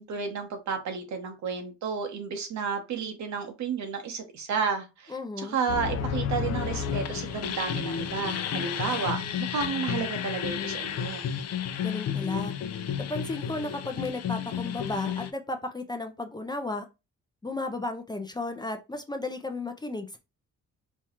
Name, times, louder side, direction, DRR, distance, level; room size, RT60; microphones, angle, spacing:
voice 1, 0.0-11.3, right 5 dB, 70° right, 1.0 m, -32 dB
voice 2, 5.1-5.6 11.8-12.5 12.9-16.9 17.4-20.2, left 2 dB, 15° left, 0.5 m, -34 dB
sound 1, 5.7-15.3, left 8 dB, 60° left, 0.5 m, -32 dB
4.5 x 2.3 x 2.9 m
cardioid pair, 90°, 30 cm